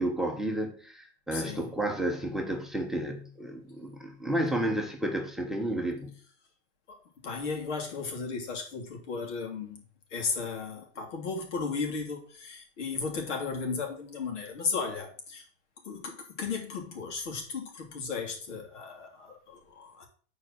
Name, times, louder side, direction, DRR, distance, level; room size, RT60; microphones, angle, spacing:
voice 1, 0.0-6.2, right 1 dB, ahead, 0.7 m, -31 dB
voice 2, 1.3-1.7 6.9-9.8 10.1-15.5 15.8-20.1, left 4 dB, 90° left, 3.0 m, -35 dB
7.4 x 4.7 x 6.0 m
supercardioid pair, 155°, 35 cm